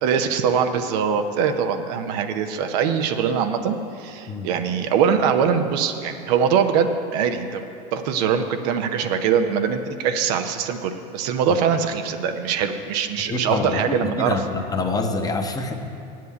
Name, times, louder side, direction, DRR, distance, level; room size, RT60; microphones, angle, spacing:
voice 1, 0.0-7.6 7.9-14.4, right 7 dB, 70° right, 7 dB, 0.8 m, -22 dB
voice 2, 13.3-15.8, left 3 dB, 15° left, 4 dB, 1.0 m, -26 dB
8.0 x 7.6 x 8.3 m, 2.6 s
hypercardioid pair, 90°, 21 cm